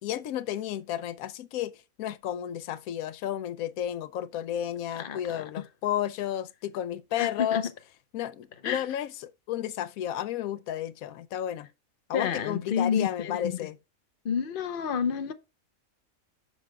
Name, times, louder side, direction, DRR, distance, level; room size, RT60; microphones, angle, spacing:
voice 1, 0.0-1.7 2.0-7.7 8.1-11.7 12.1-13.8, left 11 dB, 85° left, 1.0 m, -32 dB
voice 2, 5.0-5.4 7.2-7.6 8.6-8.8 12.1-13.6 14.2-15.3, left 7 dB, 50° left, 0.8 m, -29 dB
10.5 x 6.3 x 2.3 m
omnidirectional pair, 1.4 m